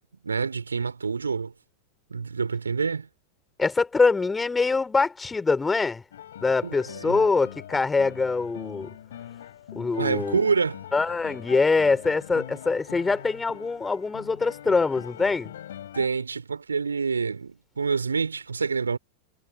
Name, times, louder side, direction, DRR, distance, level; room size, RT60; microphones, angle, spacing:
voice 1, 0.2-1.5 2.1-3.1 6.6-7.2 10.0-10.8 15.9-19.0, right 5 dB, 75° right, 3.5 m, -27 dB
voice 2, 3.6-6.0 6.4-8.9 9.7-10.4 10.9-15.5, left 4 dB, 10° left, 4.3 m, -24 dB
sound 1, 6.1-16.1, left 10 dB, 60° left, 7.1 m, -42 dB
figure-of-eight pair, 90°, 0 cm